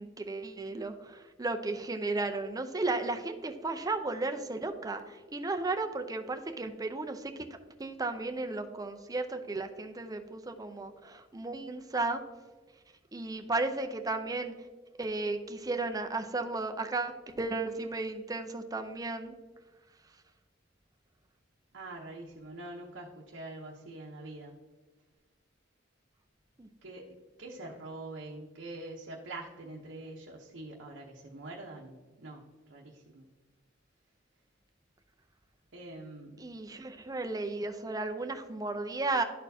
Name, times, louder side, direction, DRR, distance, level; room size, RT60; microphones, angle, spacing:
voice 1, 0.0-7.3 7.8-12.2 13.1-14.5 15.0-19.3 26.6-26.7 36.4-39.2, right 3 dB, 20° right, 6 dB, 0.5 m, -34 dB
voice 2, 21.7-24.6 26.8-27.0 27.4-33.3 35.7-36.4, right 2 dB, 65° right, -2 dB, 0.8 m, -45 dB
12.0 x 4.4 x 2.7 m, 1.3 s
head